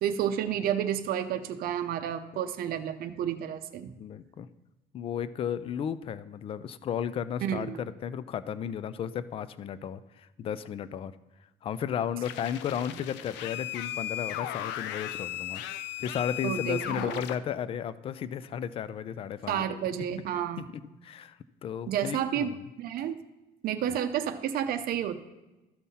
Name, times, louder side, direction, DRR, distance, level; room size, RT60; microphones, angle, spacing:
voice 1, 0.0-3.9 7.4-7.8 16.4-17.2 19.5-20.7 21.9-22.5 22.8-23.2 23.6-25.2, right 9 dB, 55° right, 7 dB, 0.7 m, -30 dB
voice 2, 4.0-4.5 4.9-11.2 11.6-15.6 16.0-19.8 20.6-22.7 23.9-24.0, left 8 dB, 30° left, 15 dB, 0.3 m, -34 dB
sound 1, 12.2-17.3, left 12 dB, 85° left, 0.5 m, -36 dB
13.0 x 5.5 x 4.2 m, 1.0 s
cardioid pair, 150°, 18 cm